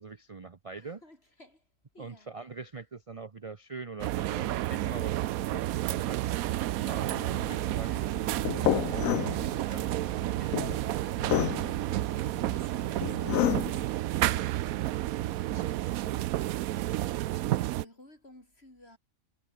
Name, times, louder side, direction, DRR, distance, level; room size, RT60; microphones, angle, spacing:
voice 1, 0.0-1.0 2.0-8.1 8.5-10.0 10.2-10.5 14.2-14.5 15.5-15.6, right 4 dB, 30° right, 0.7 m, -43 dB
voice 2, 0.8-1.6 1.9-2.3 9.0-9.3 10.9-11.4 11.6-16.5 16.7-19.0, left 1 dB, 45° left, 7.2 m, -55 dB
sound 1, 4.0-17.8, right 15 dB, 90° right, 1.0 m, -31 dB
sound 2, 7.0-13.8, left 12 dB, 75° left, 1.1 m, -31 dB
omnidirectional pair, 1.4 m